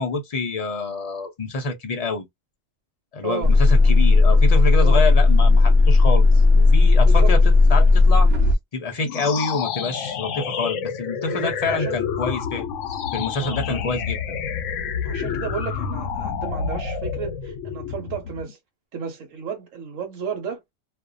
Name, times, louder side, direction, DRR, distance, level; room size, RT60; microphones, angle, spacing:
voice 1, 0.0-2.3 3.1-7.4 7.7-8.3 8.7-12.7 13.1-14.4, left 3 dB, 50° left, 0.5 m, -27 dB
voice 2, 3.2-3.5 4.8-5.2 7.1-7.3 11.3-12.0 13.4-13.8 15.0-18.6 18.9-20.6, right 7 dB, 80° right, 1.1 m, -33 dB
sound 1, 3.4-8.5, left 3 dB, 60° right, 0.8 m, -14 dB
sound 2, 9.0-18.5, left 7 dB, 75° left, 0.9 m, -29 dB
2.5 x 2.1 x 2.4 m
omnidirectional pair, 1.3 m